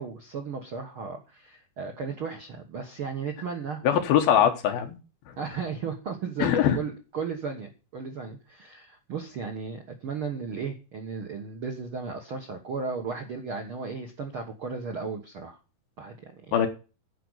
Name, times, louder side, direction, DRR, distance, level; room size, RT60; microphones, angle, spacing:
voice 1, 0.0-3.8 4.4-4.5 5.4-15.6 16.0-16.7, right 5 dB, 60° right, 3 dB, 1.3 m, -35 dB
voice 2, 3.8-5.0 6.4-6.8 16.5-16.7, left 9 dB, 70° left, 6 dB, 3.0 m, -22 dB
11.5 x 5.1 x 8.1 m, 0.33 s
omnidirectional pair, 4.6 m